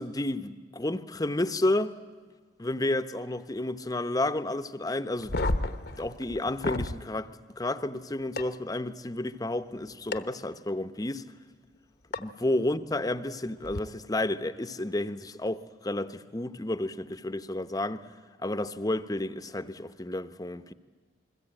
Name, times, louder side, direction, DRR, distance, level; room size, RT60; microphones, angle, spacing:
voice 1, 0.0-1.9 2.6-5.3 6.0-11.3 12.2-18.1 18.4-20.7, left 1 dB, 20° left, 0.8 m, -31 dB
sound 1, 5.2-7.0 8.4-8.5 10.1-10.2 12.1-12.2 13.6-13.8, left 2 dB, 60° left, 1.0 m, -30 dB
28.0 x 21.5 x 9.0 m
head